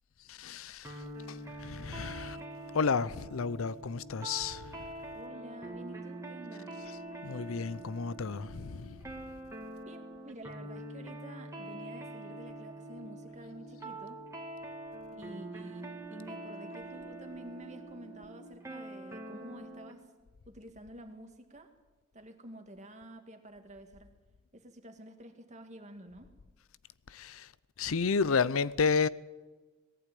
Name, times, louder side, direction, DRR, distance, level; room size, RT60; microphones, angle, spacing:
voice 1, 0.3-2.4 2.7-4.9 7.2-9.0 27.1-27.5 27.8-29.1, left 5 dB, 80° left, 0.6 m, -32 dB
sound 1, 0.8-20.0, right 2 dB, 15° right, 2.3 m, -44 dB
voice 2, 5.1-6.8 9.8-14.2 15.1-20.0 20.5-21.7 22.1-24.1 24.5-26.3, right 1 dB, 35° right, 2.1 m, -49 dB
19.0 x 15.0 x 9.2 m
head